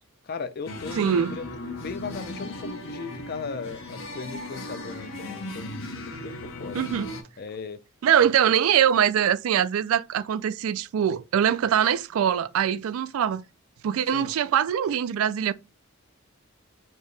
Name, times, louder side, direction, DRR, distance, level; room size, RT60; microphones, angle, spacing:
voice 1, 0.2-6.8 7.4-7.8 14.1-14.3, left 5 dB, 45° left, 0.4 m, -37 dB
sound 1, 0.7-7.2, left 1 dB, 70° left, 0.8 m, -37 dB
voice 2, 1.0-1.4 6.7-7.1 8.0-13.4 13.8-15.5, right 9 dB, 75° right, 0.3 m, -23 dB
4.5 x 2.9 x 3.1 m
head